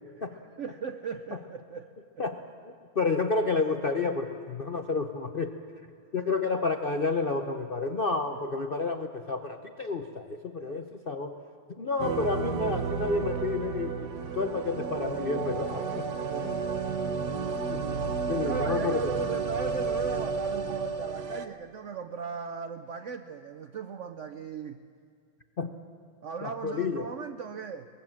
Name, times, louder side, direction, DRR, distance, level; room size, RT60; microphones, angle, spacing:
voice 1, 0.6-2.2 6.1-6.4 8.3-8.5 10.6-10.8 14.5-14.9 16.3-16.7 18.3-24.8 26.2-27.9, right 6 dB, 85° right, 8 dB, 0.6 m, -37 dB
voice 2, 2.6-5.5 6.1-11.4 11.7-16.1 17.7-17.8 18.3-19.0 25.6-25.7 26.4-27.1, left 4 dB, 70° left, 5 dB, 0.5 m, -30 dB
sound 1, 12.0-21.5, right 5 dB, 60° right, 1.5 m, -32 dB
23.0 x 20.0 x 7.4 m, 2.3 s
omnidirectional pair, 2.1 m